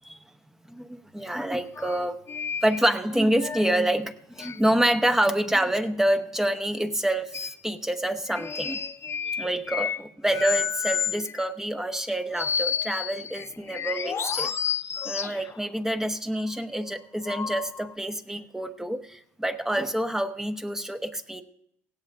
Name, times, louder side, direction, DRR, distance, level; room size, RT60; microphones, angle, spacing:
voice 1, 0.7-2.2 2.6-8.8 9.4-21.4, right 1 dB, 5° right, 7 dB, 0.9 m, -27 dB
sound 1, 1.8-2.0 2.3-3.6 4.4-4.6 7.3-7.6 8.3-10.0 10.3-11.5 12.3-15.6 17.3-17.9, left 7 dB, 35° left, 0.6 m, -31 dB
17.0 x 16.5 x 2.5 m, 0.71 s
supercardioid pair, 90°, 7 cm